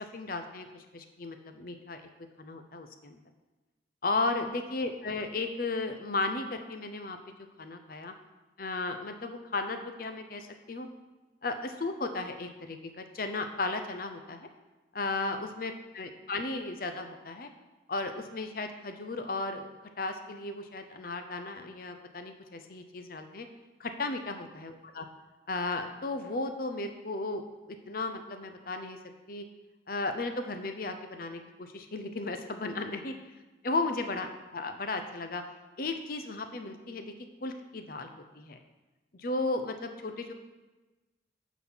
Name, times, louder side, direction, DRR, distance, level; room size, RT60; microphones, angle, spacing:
voice 1, 0.0-2.0 2.4-3.2 4.0-7.2 7.6-8.1 8.6-10.9 11.4-14.5 14.9-17.5 17.9-19.7 20.0-23.5 23.8-25.1 25.5-29.0 29.3-29.4 29.9-33.1 33.6-35.4 35.8-37.1 37.4-38.6 39.1-40.3, left 3 dB, 50° left, 7 dB, 0.7 m, -35 dB
9.1 x 4.1 x 6.2 m, 1.2 s
head